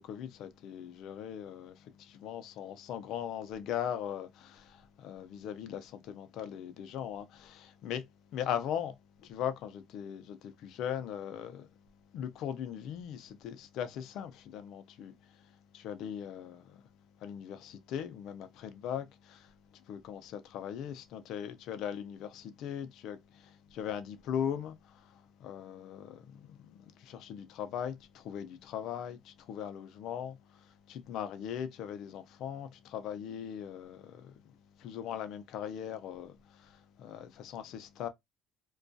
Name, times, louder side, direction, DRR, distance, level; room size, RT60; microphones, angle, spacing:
voice 1, 0.0-8.1 8.3-11.7 12.1-16.9 17.2-34.5 34.8-38.1, left 9 dB, 70° left, 0.4 m, -40 dB
2.2 x 2.2 x 2.6 m
cardioid pair, 100°, 0 cm